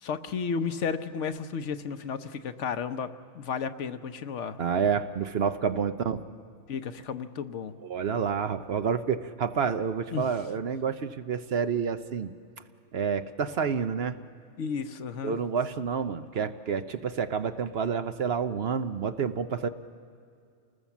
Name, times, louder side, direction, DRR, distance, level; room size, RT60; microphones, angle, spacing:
voice 1, 0.0-3.1 3.3-4.6 6.7-7.7 10.1-10.3 14.6-15.3, left 6 dB, 70° left, 10 dB, 1.1 m, -33 dB
voice 2, 4.6-6.2 7.8-12.3 12.9-14.2 15.2-19.7, right 6 dB, 55° right, 10 dB, 0.9 m, -29 dB
28.5 x 19.5 x 7.2 m, 2.3 s
omnidirectional pair, 1.3 m